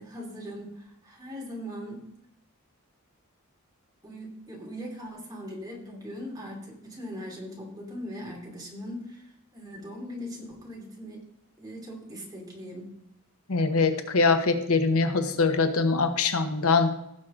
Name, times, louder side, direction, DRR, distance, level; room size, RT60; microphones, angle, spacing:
voice 1, 0.0-2.1 4.0-11.2 11.6-12.9, equal, 15° right, -2 dB, 2.7 m, -40 dB
voice 2, 13.5-17.0, left 4 dB, 80° left, 7 dB, 1.0 m, -23 dB
16.5 x 6.5 x 3.7 m, 0.81 s
head